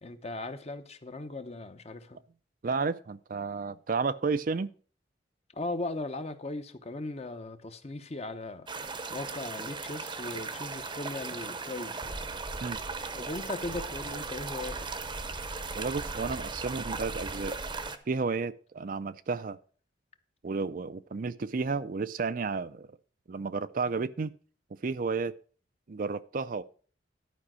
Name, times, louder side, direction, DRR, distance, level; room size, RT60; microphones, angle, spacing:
voice 1, 0.0-2.2 5.5-8.7 9.1-12.1 13.1-15.1, left 2 dB, 35° left, 0.8 m, -38 dB
voice 2, 2.6-4.7 12.6-12.8 15.7-17.5 18.1-19.6 20.4-22.9 23.3-24.3 24.8-25.3 25.9-26.6, right 4 dB, 50° right, 0.4 m, -32 dB
sound 1, 8.7-18.0, right 4 dB, 25° right, 0.8 m, -37 dB
11.5 x 5.2 x 6.1 m
head